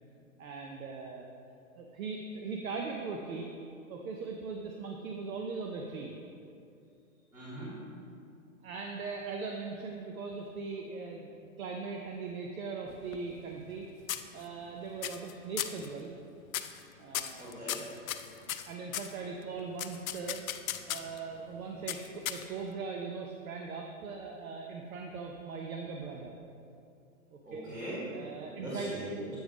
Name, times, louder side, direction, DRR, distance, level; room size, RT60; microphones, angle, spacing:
voice 1, 0.4-1.3 1.7-3.5 3.9-6.1 8.6-13.9 14.3-16.1 17.0-17.6 18.5-20.4 20.9-26.4 27.3-27.7 28.1-28.9, right 4 dB, 75° right, 1 dB, 0.7 m, -40 dB
voice 2, 7.3-7.7 17.4-17.8 27.4-28.2 28.6-29.4, right 1 dB, 10° right, -9 dB, 1.5 m, -40 dB
sound 1, 12.9-13.8 14.1-14.7 15.0-15.3 15.6-15.9 16.5-16.8 17.1-19.1 19.8-21.2 21.9-22.7, left 11 dB, 75° left, 0.5 m, -36 dB
8.0 x 3.4 x 4.9 m, 2.6 s
hypercardioid pair, 135°, 42 cm